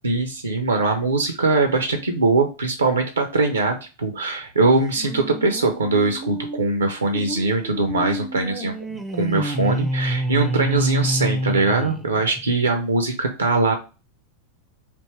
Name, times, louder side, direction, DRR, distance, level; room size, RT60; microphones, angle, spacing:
voice 1, 0.0-13.8, right 3 dB, 75° right, 6 dB, 0.5 m, -21 dB
sound 1, 5.0-12.5, right 1 dB, 5° right, 0.4 m, -28 dB
3.4 x 2.7 x 3.1 m, 0.31 s
figure-of-eight pair, 90°, 0 cm